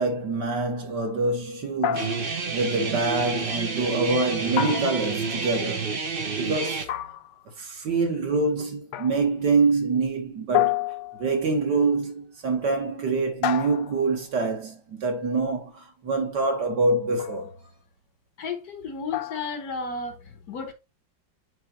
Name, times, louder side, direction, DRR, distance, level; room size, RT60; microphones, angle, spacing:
voice 1, 0.0-2.2 2.5-5.9 6.4-6.9 7.6-17.5, right 3 dB, 65° right, 2.1 m, -25 dB
sound 1, 1.8-2.6 4.6-5.4 6.9-7.5 8.9-9.3 10.5-11.5 13.4-14.2 17.2-17.5 19.1-19.6, left 11 dB, 75° left, 1.2 m, -29 dB
Guitar, 1.9-6.9, right 4 dB, 45° right, 0.8 m, -29 dB
voice 2, 18.4-20.7, left 4 dB, 55° left, 1.4 m, -33 dB
7.7 x 5.0 x 3.0 m
omnidirectional pair, 2.1 m